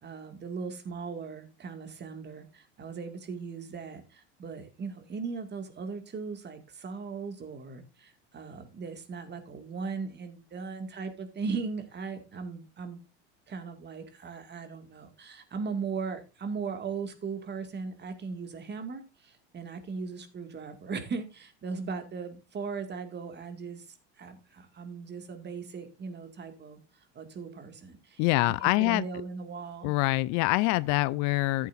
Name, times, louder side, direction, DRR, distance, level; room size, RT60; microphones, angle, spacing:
voice 1, 0.0-13.0 13.5-26.8 27.1-29.9, right 5 dB, 30° right, 2.3 m, -38 dB
voice 2, 28.2-29.0 29.8-31.7, left 20 dB, 55° left, 0.5 m, -25 dB
14.0 x 8.5 x 2.6 m
hypercardioid pair, 90°, 35 cm